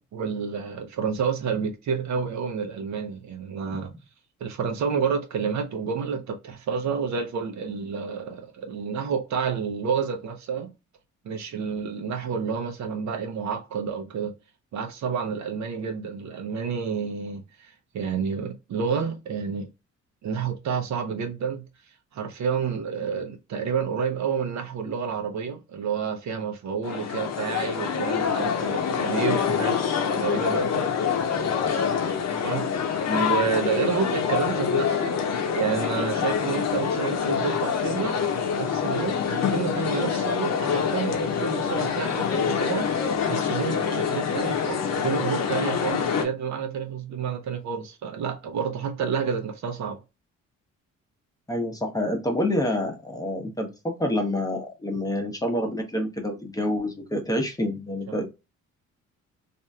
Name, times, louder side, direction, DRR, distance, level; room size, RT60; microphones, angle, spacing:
voice 1, 0.0-3.9 4.4-10.7 11.2-14.3 14.7-19.7 20.2-21.6 22.1-29.8 30.1-30.9 32.3-35.2 35.5-38.2 38.5-50.0 58.1-58.2, right 6 dB, 65° right, 0.8 m, -29 dB
sound 1, 26.8-46.3, left 7 dB, 60° left, 0.7 m, -26 dB
voice 2, 33.1-33.4 51.5-58.3, left 1 dB, 10° left, 0.8 m, -27 dB
2.9 x 2.6 x 2.3 m
cardioid pair, 90°, 30 cm